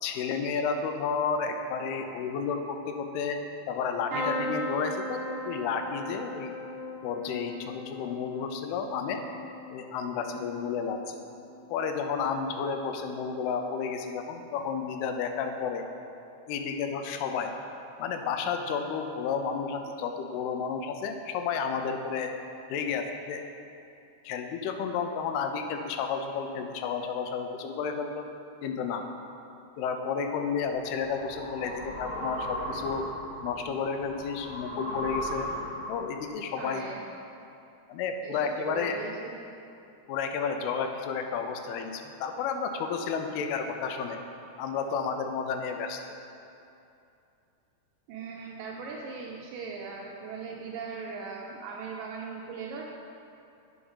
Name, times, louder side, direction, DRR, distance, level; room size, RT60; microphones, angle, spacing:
voice 1, 0.0-3.4 3.7-6.5 7.0-9.2 9.7-11.2 11.7-15.8 16.5-17.6 18.0-22.3 22.7-23.4 24.3-28.2 28.6-29.0 29.8-33.1 33.4-35.5 35.9-36.8 37.9-39.0 40.1-44.2 44.6-46.0, left 6 dB, 85° left, 5 dB, 2.6 m, -31 dB
sound 1, 4.1-11.9 12.4-12.9 14.2-14.4 14.6-14.7, left 1 dB, 55° right, 1.8 m, -38 dB
sound 2, 30.4-36.2, equal, 55° left, 0.8 m, -37 dB
voice 2, 36.6-37.0 38.2-39.4 48.1-52.9, right 5 dB, 80° right, -1 dB, 2.0 m, -39 dB
8.5 x 5.9 x 5.5 m, 2.7 s
omnidirectional pair, 4.5 m